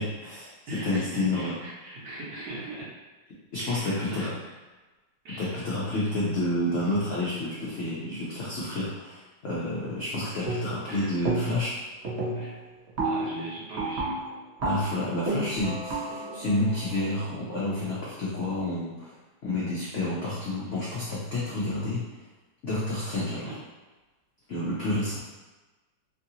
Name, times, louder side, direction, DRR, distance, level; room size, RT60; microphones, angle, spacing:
voice 1, 0.0-0.5 0.8-1.5 3.5-4.3 5.4-11.8 14.6-19.1 19.4-22.0 22.6-23.5 24.5-25.2, left 1 dB, 75° left, -8 dB, 0.6 m, -29 dB
voice 2, 0.7-2.9 3.6-4.3 5.2-5.6 10.9-11.3 12.4-12.6 13.0-14.2 23.4-23.5, right 1 dB, 65° right, -7 dB, 1.5 m, -39 dB
sound 1, 10.5-10.9 11.2-11.7 12.0-17.9, right 2 dB, 85° right, 0.5 m, -32 dB
3.1 x 2.5 x 2.7 m, 1.2 s
omnidirectional pair, 2.1 m